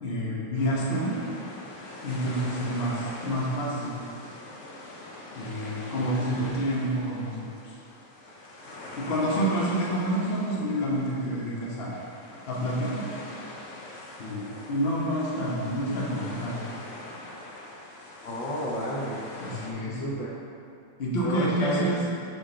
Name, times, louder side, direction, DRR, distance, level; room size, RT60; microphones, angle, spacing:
voice 1, 0.0-1.1 2.0-4.0 5.3-7.5 9.0-12.0 12.5-13.1 14.2-16.6 19.4-20.0 21.0-22.0, equal, 40° left, -6 dB, 1.0 m, -28 dB
sound 1, 0.6-19.7, left 2 dB, 65° left, 0.7 m, -43 dB
voice 2, 6.0-6.6 18.2-19.2 20.0-20.4 21.2-22.0, equal, 80° left, -5 dB, 1.8 m, -31 dB
5.1 x 5.1 x 3.8 m, 2.7 s
omnidirectional pair, 2.0 m